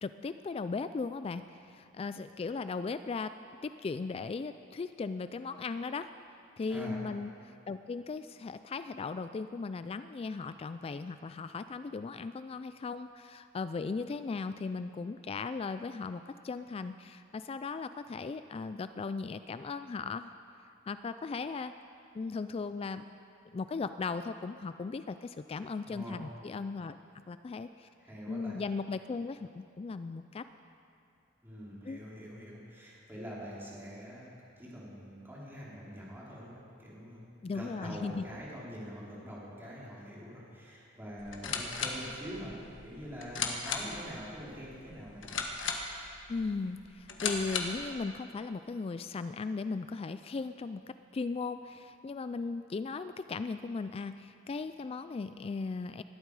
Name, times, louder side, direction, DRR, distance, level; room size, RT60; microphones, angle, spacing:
voice 1, 0.0-3.3 3.6-6.1 6.6-20.3 20.9-21.7 22.1-23.0 23.5-26.9 27.3-27.9 28.3-30.5 31.8-32.0 37.4-38.3 46.3-56.0, left 4 dB, 30° left, 11 dB, 0.3 m, -37 dB
voice 2, 25.8-26.2 28.0-28.6 31.4-34.3 34.6-42.5 42.8-45.3, equal, 10° right, -7 dB, 3.7 m, -44 dB
sound 1, 41.2-47.9, left 5 dB, 75° left, 1.5 m, -37 dB
19.5 x 13.0 x 4.8 m, 2.6 s
head